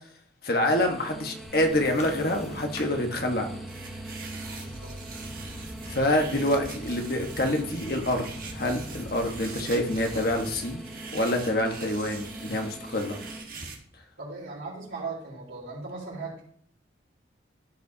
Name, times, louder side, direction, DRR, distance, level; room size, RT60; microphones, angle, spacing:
voice 1, 0.4-3.5 5.9-8.2 8.5-10.8 11.1-13.2, left 1 dB, 55° left, 3 dB, 1.3 m, -26 dB
sound 1, 0.6-13.4, right 1 dB, ahead, 1.3 m, -43 dB
sound 2, 1.4-10.6, equal, 35° left, 1.5 m, -43 dB
sound 3, 3.7-13.8, right 4 dB, 50° right, 1.4 m, -43 dB
voice 2, 14.2-16.5, right 3 dB, 90° right, -3 dB, 3.9 m, -38 dB
14.5 x 5.0 x 2.8 m, 0.63 s
head